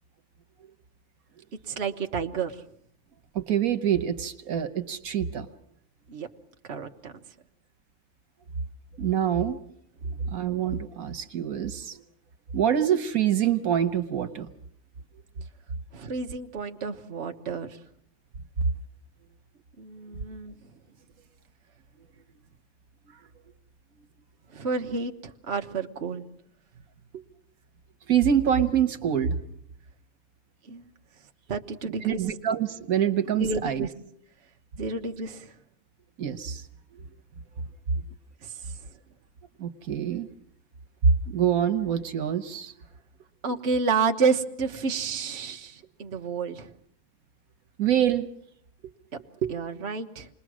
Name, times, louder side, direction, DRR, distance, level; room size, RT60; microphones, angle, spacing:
voice 1, 1.7-2.6 6.1-6.3 6.7-7.1 15.9-17.8 19.8-20.5 24.5-26.2 27.1-27.2 30.7-30.9 31.5-32.2 33.4-33.9 34.8-35.5 38.4-38.5 43.4-46.7 49.1-50.3, right 5 dB, 50° right, 4 dB, 1.4 m, -30 dB
voice 2, 3.3-5.5 9.0-9.6 10.3-12.0 12.5-14.5 28.1-29.4 32.0-33.9 36.2-36.6 39.6-40.3 41.0-42.7 47.8-48.3, right 8 dB, 85° right, 8 dB, 1.6 m, -25 dB
28.0 x 20.5 x 6.3 m, 0.68 s
omnidirectional pair, 1.5 m